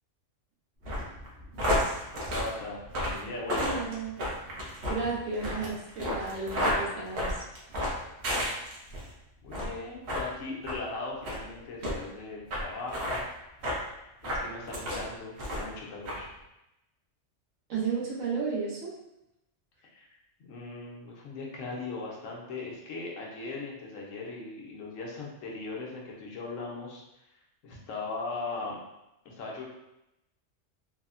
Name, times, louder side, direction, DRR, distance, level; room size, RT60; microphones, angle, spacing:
sound 1, 0.8-9.1 9.5-9.8 10.1-10.3 10.6-10.8 11.2-11.4 11.8-11.9 12.5-12.6 12.9-13.2 13.6-13.8 14.2-15.0 15.4-15.8 16.1-16.2, equal, 65° right, 1.0 m, -31 dB
voice 1, 2.1-3.8 9.4-13.2 14.0-16.3 19.8-20.1 20.4-27.0 27.6-28.8 29.2-29.6, left 3 dB, 90° left, -2 dB, 1.1 m, -39 dB
voice 2, 3.5-4.2 4.9-7.4 17.7-18.9, right 4 dB, 85° right, -5 dB, 1.2 m, -33 dB
3.4 x 2.0 x 2.4 m, 0.89 s
omnidirectional pair, 1.3 m